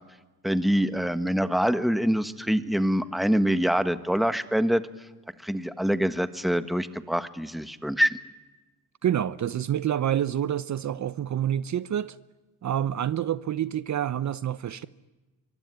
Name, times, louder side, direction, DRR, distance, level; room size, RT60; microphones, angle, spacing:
voice 1, 0.4-4.8 5.4-8.2, equal, ahead, 1.4 m, -25 dB
voice 2, 9.0-12.2 12.6-14.9, right 10 dB, 50° right, 0.8 m, -27 dB
24.0 x 23.5 x 9.7 m
cardioid pair, 100°, 38 cm